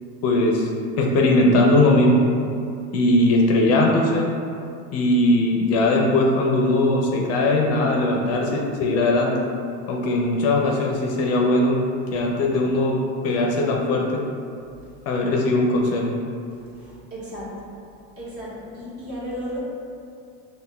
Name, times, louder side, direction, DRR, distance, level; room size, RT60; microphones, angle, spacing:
voice 1, 0.2-0.7 1.0-2.2 2.9-4.3 4.9-9.3 9.9-11.8 12.1-13.0 13.2-14.1 15.1-16.1, left 1 dB, 45° left, 0 dB, 0.5 m, -19 dB
voice 2, 16.5-17.7 18.2-19.6, equal, 40° right, -7 dB, 1.3 m, -35 dB
5.3 x 2.2 x 2.2 m, 2.4 s
supercardioid pair, 115°, 35 cm